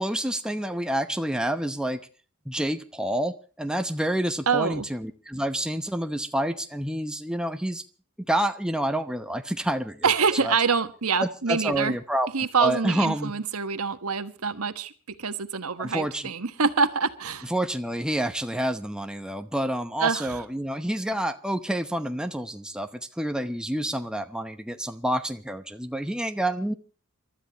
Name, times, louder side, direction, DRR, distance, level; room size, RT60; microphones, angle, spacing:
voice 1, 0.0-2.0 2.5-7.8 8.3-10.1 10.4-10.5 11.2-12.3 12.6-13.3 15.8-16.3 17.4-26.7, right 1 dB, 5° right, 7 dB, 0.8 m, -28 dB
voice 2, 4.5-4.8 10.0-12.0 12.3-14.9 15.2-17.5 20.0-20.4, right 5 dB, 75° right, 10 dB, 1.3 m, -25 dB
28.0 x 13.0 x 2.9 m, 0.36 s
head